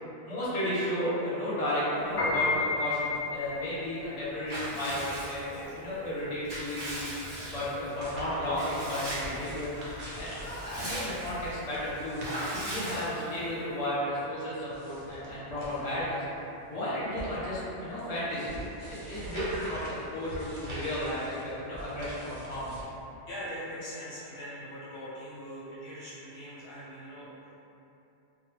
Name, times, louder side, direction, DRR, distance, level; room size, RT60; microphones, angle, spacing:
voice 1, 0.2-7.0 7.5-9.7 10.2-16.2 16.7-22.8, left 1 dB, 40° left, -10 dB, 0.7 m, -33 dB
Piano, 2.0-12.4, left 3 dB, 55° left, 0.4 m, -34 dB
Water / Bathtub (filling or washing) / Liquid, 4.5-5.7 6.2-7.9 8.5-9.5 9.9-10.0 10.3-11.5 12.2-13.5, right 1 dB, 30° right, 0.6 m, -38 dB
sound 1, 7.7-22.8, right 1 dB, 75° right, 0.9 m, -44 dB
voice 2, 23.3-27.6, equal, 70° left, -8 dB, 0.8 m, -42 dB
2.2 x 2.0 x 3.0 m, 2.9 s
omnidirectional pair, 1.2 m